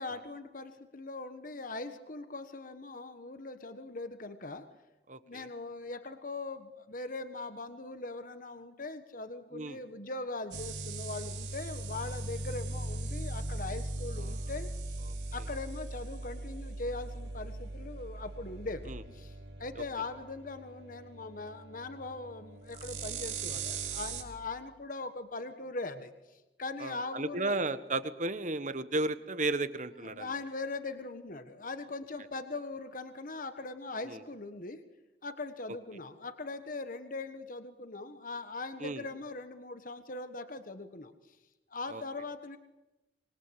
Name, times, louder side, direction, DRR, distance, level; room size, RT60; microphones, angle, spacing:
voice 1, 0.0-4.6 5.2-15.0 15.3-27.6 30.0-34.8 35.2-41.4 41.7-42.6, left 3 dB, 50° left, 9 dB, 1.4 m, -41 dB
voice 2, 5.1-5.5 9.5-9.8 14.2-14.3 15.1-15.2 18.9-19.0 19.8-19.9 26.8-30.3 34.0-34.2 38.8-39.0 41.9-42.0, right 2 dB, 45° right, 12 dB, 1.4 m, -34 dB
sound 1, 10.5-24.2, right 2 dB, 80° right, 4.3 m, -39 dB
25.5 x 22.5 x 8.3 m, 1.0 s
head